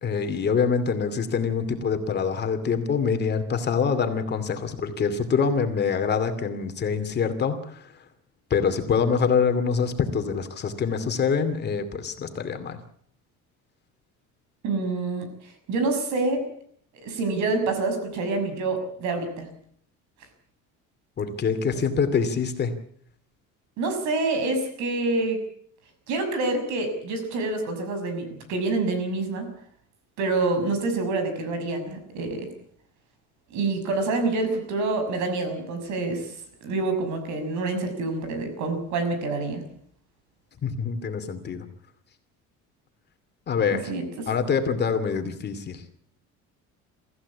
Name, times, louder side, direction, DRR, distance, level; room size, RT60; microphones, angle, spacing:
voice 1, 0.0-7.8 8.5-12.8 21.2-22.7 40.6-41.7 43.5-43.9 44.3-45.8, left 6 dB, 35° left, 7 dB, 2.5 m, -25 dB
voice 2, 14.6-16.5 16.9-19.5 23.8-25.4 26.1-29.5 30.2-32.5 33.5-39.6 43.9-44.3, right 3 dB, 70° right, 8 dB, 6.5 m, -27 dB
24.0 x 15.0 x 8.5 m, 0.64 s
cardioid pair, 145°, 30 cm